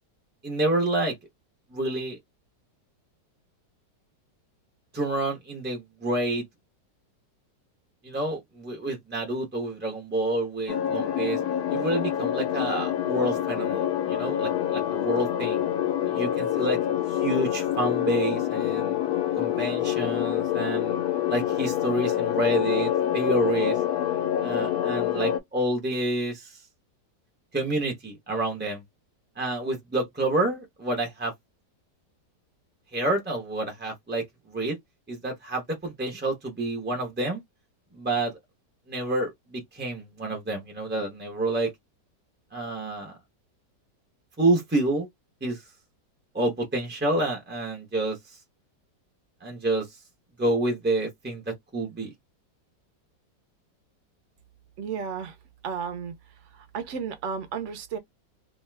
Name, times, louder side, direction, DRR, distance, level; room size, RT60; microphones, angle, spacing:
voice 1, 0.4-1.1 1.7-2.2 4.9-6.4 8.0-11.4 11.7-15.6 16.0-16.8 17.1-19.0 19.4-21.0 21.3-23.8 24.4-26.6 27.5-28.8 29.4-31.3 32.9-34.8 35.1-37.4 37.9-38.3 38.9-41.7 42.5-43.2 44.4-45.1 45.4-45.6 46.3-48.2 49.4-49.9 50.4-52.1, right 1 dB, 15° right, 0.4 m, -28 dB
sound 1, 10.7-25.4, left 11 dB, 70° left, 1.0 m, -26 dB
voice 2, 54.8-55.4 55.6-56.1 56.5-58.0, right 6 dB, 65° right, 0.7 m, -33 dB
2.8 x 2.3 x 3.2 m
omnidirectional pair, 1.9 m